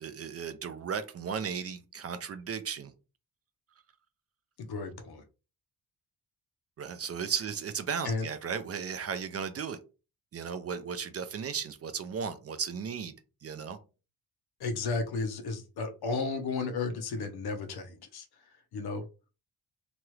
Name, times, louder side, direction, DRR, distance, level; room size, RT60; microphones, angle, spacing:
voice 1, 0.0-2.9 6.8-9.8 10.3-13.1 13.4-13.8, right 6 dB, 40° right, 10 dB, 0.4 m, -35 dB
voice 2, 4.6-5.2 8.0-8.3 14.6-18.3 18.7-19.1, left 4 dB, 75° left, 7 dB, 0.8 m, -33 dB
2.9 x 2.3 x 3.1 m, 0.32 s
wide cardioid pair, 135°, 38 cm